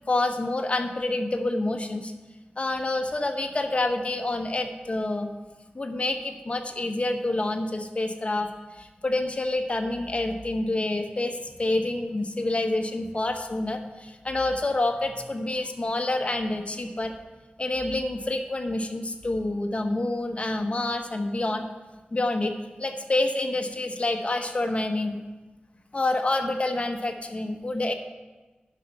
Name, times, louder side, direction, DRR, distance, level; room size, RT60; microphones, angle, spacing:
voice 1, 0.1-2.1 2.6-5.3 5.7-17.1 17.6-21.7 22.1-25.2 25.9-27.9, left 2 dB, 35° left, 5 dB, 1.0 m, -28 dB
11.0 x 5.4 x 5.7 m, 1.2 s
wide cardioid pair, 85°, 3 cm